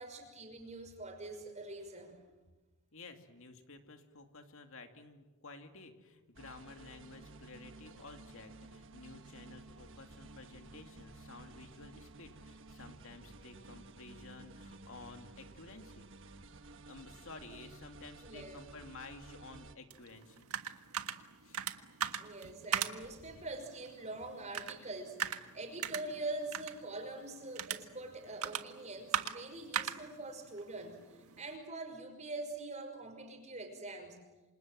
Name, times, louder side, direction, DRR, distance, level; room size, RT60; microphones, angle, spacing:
voice 1, 0.0-2.1 18.2-18.6 22.2-34.2, right 2 dB, 30° right, 5 dB, 5.8 m, -44 dB
voice 2, 2.9-16.1 16.8-20.5 21.4-21.6, left 3 dB, 65° left, 5 dB, 2.6 m, -53 dB
sound 1, 6.3-19.7, right 2 dB, 60° right, 1.4 m, -54 dB
sound 2, 19.9-31.6, right 8 dB, 80° right, 1.5 m, -41 dB
28.5 x 26.5 x 7.7 m, 1.2 s
head